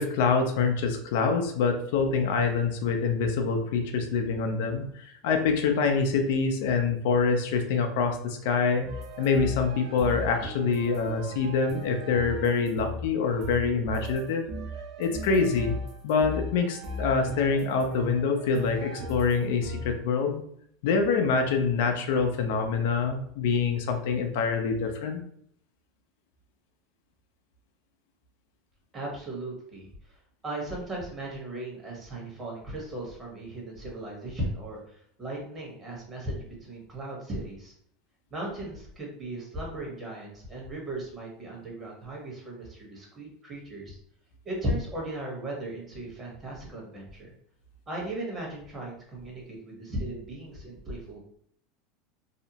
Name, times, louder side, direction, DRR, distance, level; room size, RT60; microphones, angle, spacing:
voice 1, 0.0-8.9 9.2-14.5 15.0-15.8 16.0-20.4 20.8-25.2, left 5 dB, 75° left, 4 dB, 0.4 m, -25 dB
sound 1, 8.9-20.0, left 1 dB, 50° right, 0.6 m, -37 dB
voice 2, 28.9-30.2 30.4-37.7 38.3-44.0 44.4-47.3 47.9-51.2, right 1 dB, 25° right, -3 dB, 1.1 m, -37 dB
2.7 x 2.0 x 2.8 m, 0.68 s
supercardioid pair, 115°, 0 cm